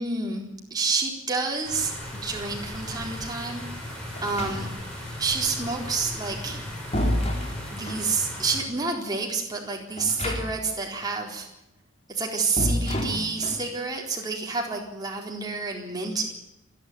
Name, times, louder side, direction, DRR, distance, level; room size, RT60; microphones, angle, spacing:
voice 1, 0.0-1.9 2.2-3.6 4.2-4.7 5.2-6.6 7.7-11.5 12.1-16.3, right 4 dB, 20° right, 0 dB, 4.1 m, -29 dB
sound 1, 1.6-8.6, left 1 dB, 5° left, 7.5 m, -37 dB
sound 2, 4.1-5.0 6.3-8.1 9.9-10.8 11.0-11.1 12.6-13.7, left 1 dB, 30° left, 3.4 m, -29 dB
27.5 x 11.0 x 9.6 m, 0.83 s
head